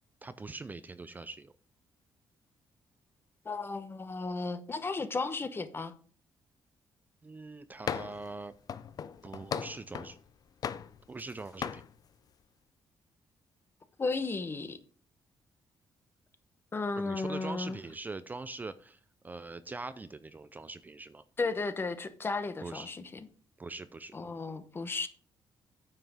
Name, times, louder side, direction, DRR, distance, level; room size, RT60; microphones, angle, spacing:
voice 1, 0.2-1.5 7.2-8.5 9.2-10.2 11.1-11.8 17.0-21.2 22.6-22.9 23.6-24.2, right 3 dB, 20° right, 0.5 m, -42 dB
voice 2, 3.4-5.9 14.0-14.8 16.7-17.8 21.4-23.3 24.1-25.1, left 3 dB, 30° left, 1.0 m, -34 dB
sound 1, 7.9-8.3 8.7-10.2 10.6-11.3 11.6-11.9, left 7 dB, 50° left, 0.5 m, -37 dB
9.3 x 5.8 x 4.9 m
cardioid pair, 120°, 8 cm